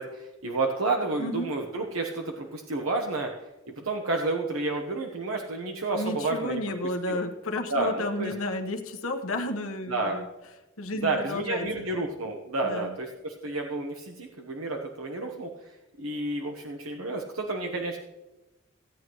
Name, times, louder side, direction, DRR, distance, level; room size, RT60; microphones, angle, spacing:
voice 1, 0.0-3.3 3.7-6.6 7.1-7.2 7.7-8.3 9.9-10.2 11.0-15.5 16.0-18.0, right 2 dB, 80° right, 2 dB, 1.1 m, -30 dB
voice 2, 1.2-1.5 5.9-10.3 10.8-11.9 12.6-13.0, left 1 dB, 75° left, 2 dB, 1.2 m, -32 dB
16.5 x 9.3 x 3.1 m, 1.0 s
head